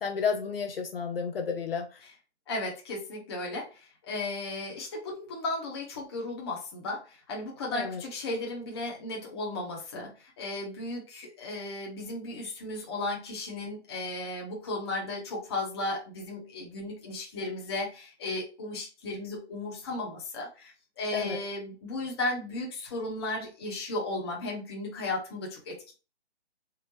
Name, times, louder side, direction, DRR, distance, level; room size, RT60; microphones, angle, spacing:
voice 1, 0.0-1.9 7.7-8.0 21.1-21.4, left 6 dB, 55° left, 0.7 m, -31 dB
voice 2, 2.5-25.9, left 2 dB, 20° left, 0.8 m, -35 dB
3.8 x 2.0 x 4.1 m
hypercardioid pair, 160°, 34 cm